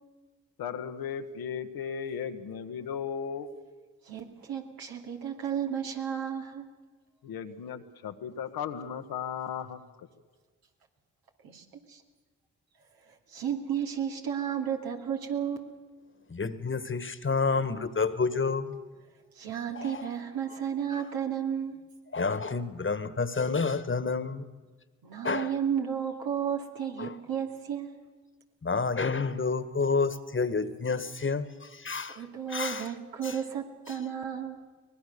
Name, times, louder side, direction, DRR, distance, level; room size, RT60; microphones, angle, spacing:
voice 1, 0.6-3.5 7.2-9.8, left 7 dB, 80° left, 7 dB, 1.4 m, -36 dB
voice 2, 4.0-6.6 11.4-12.0 13.1-15.7 19.3-21.8 25.0-28.0 32.1-34.6, right 8 dB, 75° right, 2 dB, 2.6 m, -33 dB
voice 3, 16.3-18.8 19.7-20.1 20.9-21.0 22.1-24.6 25.2-25.5 27.0-27.1 28.6-32.2 32.5-32.9 33.2-33.4, left 4 dB, 35° left, 13 dB, 1.6 m, -29 dB
23.5 x 19.0 x 6.8 m, 1.4 s
supercardioid pair, 45°, 36 cm